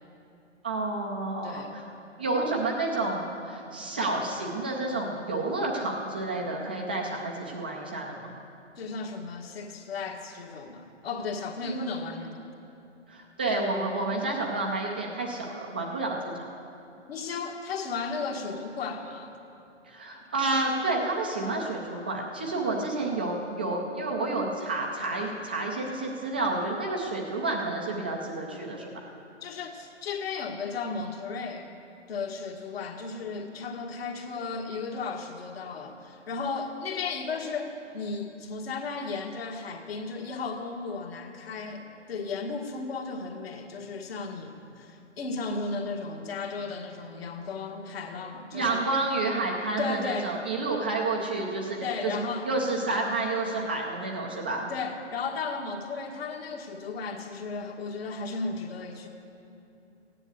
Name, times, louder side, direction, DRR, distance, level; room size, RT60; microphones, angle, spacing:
voice 1, 0.6-1.9 2.2-8.3 11.6-12.1 13.1-16.5 19.8-28.9 48.5-52.2 52.4-54.6, right 2 dB, 10° right, -1 dB, 0.4 m, -30 dB
voice 2, 8.8-12.4 17.1-19.3 29.4-31.7 32.1-48.9 49.8-50.4 51.8-52.5 54.7-59.1, left 4 dB, 55° left, 3 dB, 1.8 m, -35 dB
15.0 x 9.8 x 8.1 m, 2.7 s
hypercardioid pair, 150°, 37 cm